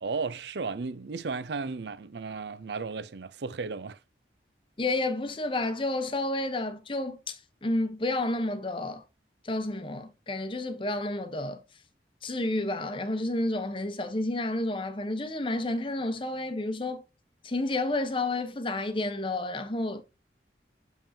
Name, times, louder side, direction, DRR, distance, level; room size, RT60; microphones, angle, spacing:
voice 1, 0.0-4.0, right 4 dB, 70° right, 0.5 m, -34 dB
voice 2, 4.8-9.0 9.4-11.6 12.2-17.0 17.4-20.0, left 2 dB, 30° left, 0.8 m, -30 dB
7.0 x 5.6 x 2.7 m
head